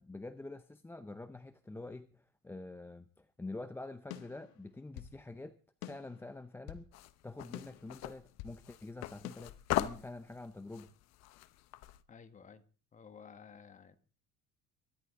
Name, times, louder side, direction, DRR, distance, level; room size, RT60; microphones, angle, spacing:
voice 1, 0.0-6.8 7.2-10.9, left 2 dB, 10° left, 0.7 m, -46 dB
sound 1, 4.1-5.2 5.8-6.9 7.5-8.6 9.2-9.3, left 13 dB, 85° left, 1.6 m, -48 dB
sound 2, 6.9-12.0, left 14 dB, 65° left, 1.1 m, -40 dB
voice 2, 12.1-12.6 12.9-14.0, left 6 dB, 25° left, 1.6 m, -54 dB
23.5 x 11.5 x 3.8 m
cardioid pair, 135°, 29 cm